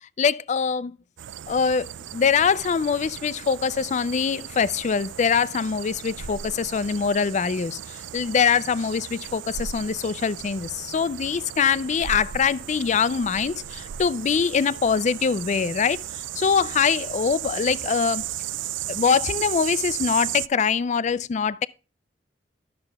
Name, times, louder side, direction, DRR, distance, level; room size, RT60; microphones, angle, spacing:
voice 1, 0.2-0.9 1.5-18.3 18.9-21.7, left 6 dB, 40° left, 0.4 m, -23 dB
sound 1, 1.2-20.5, right 11 dB, 85° right, 0.4 m, -35 dB
12.5 x 6.8 x 3.4 m
head